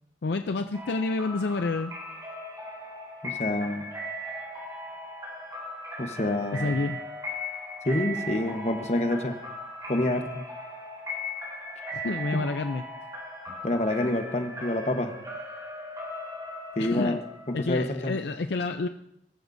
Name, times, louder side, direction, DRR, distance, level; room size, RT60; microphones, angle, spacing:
voice 1, 0.2-1.9 6.5-7.0 11.8-12.8 16.8-17.2 17.5-18.9, left 3 dB, 75° left, 8 dB, 0.5 m, -29 dB
sound 1, 0.7-18.3, left 1 dB, 20° right, 3.9 m, -38 dB
voice 2, 3.2-3.9 6.0-6.8 7.8-9.4 9.9-10.5 12.3-12.4 13.6-15.1 16.8-17.2 17.5-18.2, left 1 dB, 40° left, 6 dB, 1.1 m, -27 dB
20.5 x 14.0 x 2.7 m, 0.78 s
head